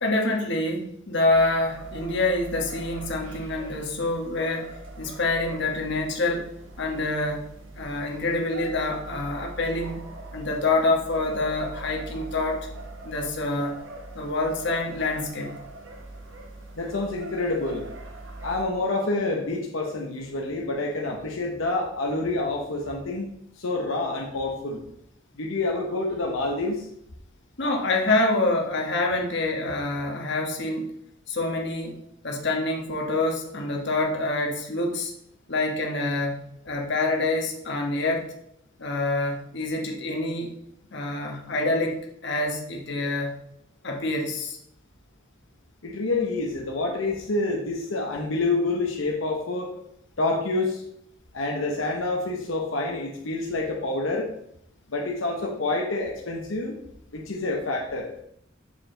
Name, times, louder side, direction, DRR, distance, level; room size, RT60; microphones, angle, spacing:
voice 1, 0.0-4.7 5.0-6.5 6.8-7.5 7.7-10.0 10.3-12.7 13.0-13.8 14.1-15.6 27.6-30.9 31.3-32.0 32.2-35.1 35.5-38.3 38.8-40.5 40.9-43.4 43.8-44.6, left 2 dB, 60° left, 1 dB, 1.2 m, -26 dB
sound 1, 1.3-18.7, right 2 dB, 80° right, 1.2 m, -41 dB
voice 2, 16.7-17.8 18.4-23.3 23.6-24.8 25.3-26.9 45.8-49.8 50.2-50.8 51.3-54.3 54.9-56.8 57.1-58.1, left 2 dB, 85° left, 1 dB, 0.9 m, -27 dB
7.1 x 4.9 x 3.8 m, 0.73 s
head